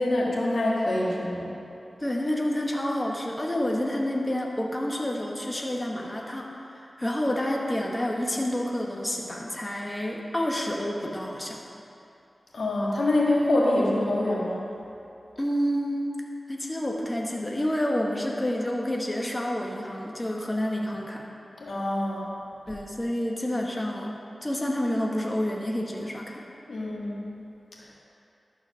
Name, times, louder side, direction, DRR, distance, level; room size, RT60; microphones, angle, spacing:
voice 1, 0.0-1.5 12.5-14.7 21.6-22.3 26.7-27.3, left 1 dB, 85° left, -4 dB, 1.7 m, -25 dB
voice 2, 2.0-11.6 15.4-16.1 16.5-21.3 22.7-26.4, left 1 dB, 20° left, -1 dB, 1.1 m, -29 dB
12.0 x 4.7 x 6.2 m, 2.8 s
wide cardioid pair, 60°, 0 cm